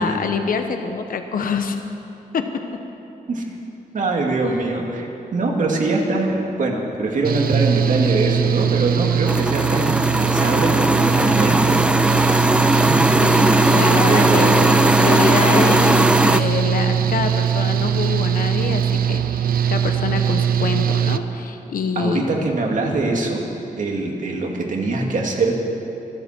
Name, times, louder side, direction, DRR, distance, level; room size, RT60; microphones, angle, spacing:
voice 1, 0.0-1.8 2.3-2.7 4.4-4.6 13.2-22.3, left 5 dB, 75° left, 6 dB, 1.0 m, -25 dB
voice 2, 3.9-12.4 12.9-13.0 14.1-14.7 22.0-23.4 23.7-25.5, right 2 dB, 60° right, 0 dB, 2.4 m, -23 dB
Engine / Mechanical fan, 7.2-21.2, right 9 dB, 80° right, 0.6 m, -21 dB
sound 1, 9.3-16.4, right 1 dB, 5° right, 0.5 m, -18 dB
25.0 x 13.0 x 4.5 m, 2.9 s
wide cardioid pair, 135°, 15 cm